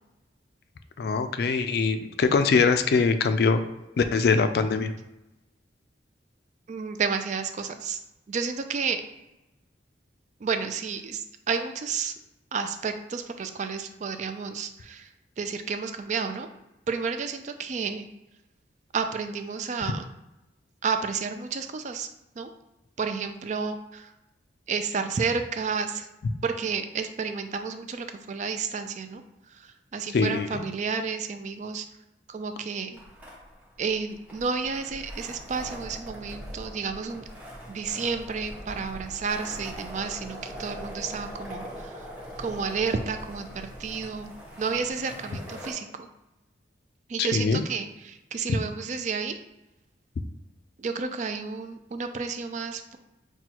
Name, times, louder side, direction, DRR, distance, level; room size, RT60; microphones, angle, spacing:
voice 1, 1.0-3.6 4.0-4.9 30.1-30.5 47.2-47.6, left 4 dB, 55° left, 9 dB, 0.3 m, -22 dB
voice 2, 6.7-8.0 8.3-9.1 10.4-12.1 12.5-16.5 16.9-18.1 18.9-20.1 20.8-22.1 22.4-22.5 23.0-24.1 24.7-26.1 26.4-31.9 32.3-33.0 33.8-37.2 37.7-42.1 42.4-46.1 47.1-49.4 50.8-53.0, right 5 dB, 40° right, 8 dB, 0.3 m, -31 dB
sound 1, 32.9-45.7, equal, 10° right, 1.1 m, -41 dB
6.0 x 2.3 x 2.9 m, 0.97 s
head